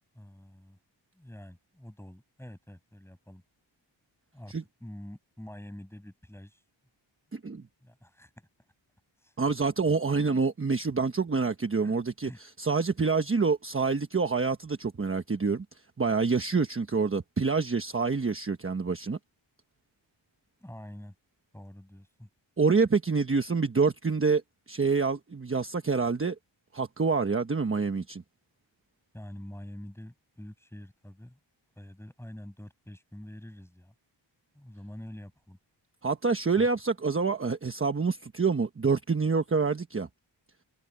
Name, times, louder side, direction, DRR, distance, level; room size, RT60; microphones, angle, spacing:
voice 1, 0.1-0.8 1.1-3.4 4.3-4.5 4.8-6.6 7.8-8.5 9.2-9.4 9.9-10.0 11.8-12.4 20.6-21.2 21.5-22.3 29.1-31.4 31.8-33.9 34.5-35.6 36.5-36.7, left 1 dB, 5° left, 6.1 m, -46 dB
voice 2, 7.3-7.6 9.4-12.3 12.6-15.6 16.0-19.2 22.6-24.4 24.7-26.3 26.7-28.2 36.0-40.1, right 4 dB, 25° right, 1.1 m, -27 dB
wide cardioid pair, 160°, 46 cm